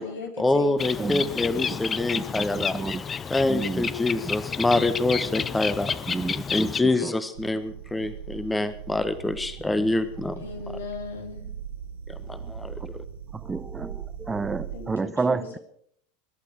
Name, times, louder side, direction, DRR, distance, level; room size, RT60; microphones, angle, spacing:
voice 1, 0.4-2.8 3.3-5.9 6.5-10.4 12.1-12.8, left 2 dB, 10° left, 12 dB, 1.3 m, -26 dB
Bird, 0.8-6.8, left 6 dB, 25° left, 0.6 m, -30 dB
voice 2, 2.1-3.0 3.5-3.9 6.1-7.2 9.8-9.9 12.3-12.5 12.8-12.9 13.3-15.6, right 4 dB, 15° right, 14 dB, 0.8 m, -31 dB
sound 1, 7.3-15.0, right 8 dB, 65° right, 1.0 m, -40 dB
voice 3, 10.4-11.5 14.7-15.5, left 4 dB, 75° left, 4 dB, 3.1 m, -37 dB
22.0 x 11.5 x 4.8 m, 0.64 s
figure-of-eight pair, 85°, 0 cm